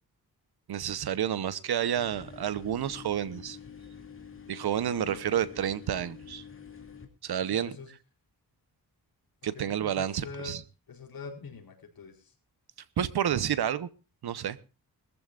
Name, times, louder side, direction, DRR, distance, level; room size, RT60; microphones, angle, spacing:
voice 1, 0.7-3.6 4.5-6.4 7.2-7.7 9.4-10.6 13.0-13.9 14.2-14.6, right 10 dB, 85° right, 16 dB, 1.0 m, -30 dB
sound 1, 2.0-7.1, left 6 dB, 35° left, 2.6 m, -47 dB
voice 2, 4.9-5.5 7.4-7.9 9.5-10.6 10.9-12.3, left 5 dB, 65° left, 1 dB, 4.5 m, -44 dB
22.0 x 14.5 x 2.5 m, 0.32 s
wide cardioid pair, 145°, 38 cm